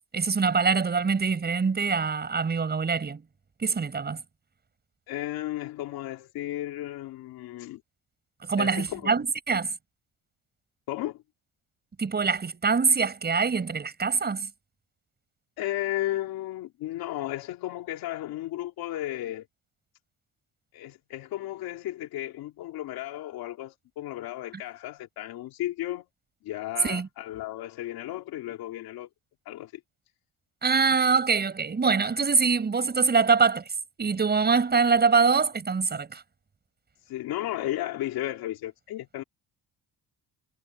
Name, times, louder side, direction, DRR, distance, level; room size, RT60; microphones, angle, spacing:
voice 1, 0.1-3.2 3.6-4.2 8.4-9.7 12.0-14.5 26.8-27.1 30.6-33.6 34.0-36.2, right 5 dB, 25° right, 6.2 m, -24 dB
voice 2, 5.1-7.8 8.6-9.2 10.9-11.2 15.6-19.5 20.7-26.0 26.4-29.1 29.5-29.7 37.1-39.2, left 14 dB, 80° left, 2.7 m, -34 dB
cardioid pair, 125°, 36 cm